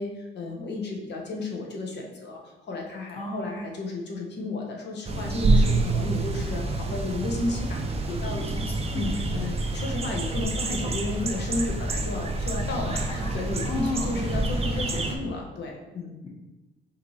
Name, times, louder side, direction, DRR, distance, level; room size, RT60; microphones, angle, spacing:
voice 1, 0.0-8.5 8.9-16.2, left 2 dB, 60° left, 0 dB, 1.0 m, -33 dB
voice 2, 3.1-3.6 8.5-9.2 13.1-14.3, left 2 dB, 30° left, 0 dB, 1.1 m, -34 dB
sound 1, 5.0-15.2, right 2 dB, 30° right, 0.6 m, -27 dB
5.0 x 2.9 x 3.2 m, 1.1 s
cardioid pair, 90°, 20 cm